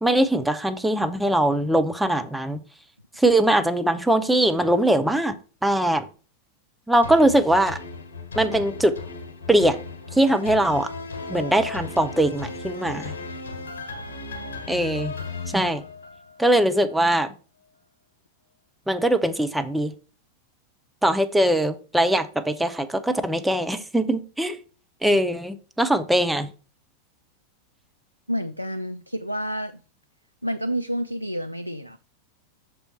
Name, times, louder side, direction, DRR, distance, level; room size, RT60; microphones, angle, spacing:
voice 1, 0.0-2.6 3.2-5.4 5.6-6.1 6.9-7.8 8.4-8.9 9.5-9.8 10.1-10.9 11.3-13.1 14.7-15.2 15.5-15.8 16.4-17.3 18.9-19.9 21.0-24.6 25.0-26.5, right 1 dB, 5° right, 0.6 m, -21 dB
sound 1, 7.0-16.4 16.9-17.0, left 4 dB, 65° left, 1.5 m, -36 dB
voice 2, 28.3-29.8 30.4-32.0, equal, 90° left, 0.3 m, -29 dB
6.9 x 4.4 x 4.2 m
figure-of-eight pair, 90°, 0 cm